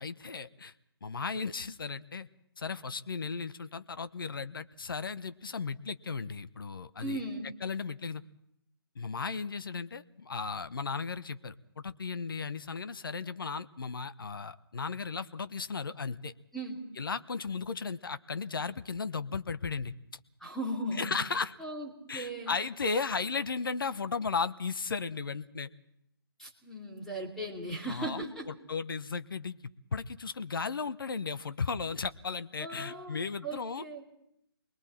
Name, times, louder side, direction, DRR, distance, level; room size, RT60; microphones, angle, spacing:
voice 1, 0.0-0.7 1.0-2.3 2.6-7.2 7.6-8.2 9.0-16.3 17.0-19.9 21.0-21.5 22.1-25.7 27.9-29.6 29.9-33.8, left 5 dB, 60° left, 12 dB, 1.0 m, -35 dB
voice 2, 7.0-7.5 16.5-16.8 20.4-21.1 21.6-22.6 26.4-28.5 32.6-34.0, right 1 dB, 5° left, -2 dB, 3.0 m, -38 dB
28.5 x 22.0 x 4.4 m, 0.77 s
figure-of-eight pair, 145°, 13 cm